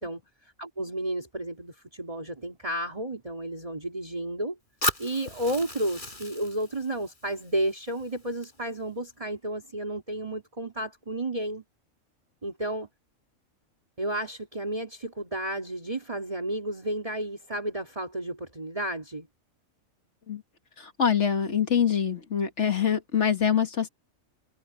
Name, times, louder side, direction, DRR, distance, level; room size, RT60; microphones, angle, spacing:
voice 1, 0.0-4.6 5.0-11.6 12.4-12.9 14.0-19.3, right 1 dB, 25° right, 3.0 m, -32 dB
Fire, 4.8-8.8, left 1 dB, 35° left, 6.6 m, -36 dB
voice 2, 20.8-23.9, left 8 dB, 55° left, 2.0 m, -25 dB
omnidirectional pair, 1.4 m